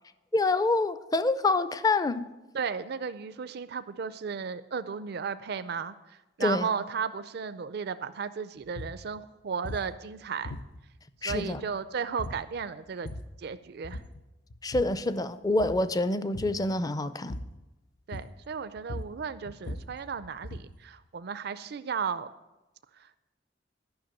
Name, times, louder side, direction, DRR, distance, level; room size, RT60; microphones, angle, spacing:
voice 1, 0.3-2.3 6.4-6.7 11.2-11.6 14.6-17.4, left 2 dB, 20° left, 0.5 m, -27 dB
voice 2, 2.5-10.6 11.2-13.1 13.4-14.0 18.1-22.3, right 6 dB, 60° right, 0.4 m, -34 dB
sound 1, 8.7-9.0 9.6-9.9 10.4-11.0 11.3-11.8 12.2-12.5 12.9-13.4 13.8-14.2 14.5-15.0 15.5-15.9 16.3-16.6 17.3-17.6 18.1-18.5 18.8-20.8, left 1 dB, 75° left, 0.7 m, -40 dB
10.5 x 5.8 x 8.8 m
head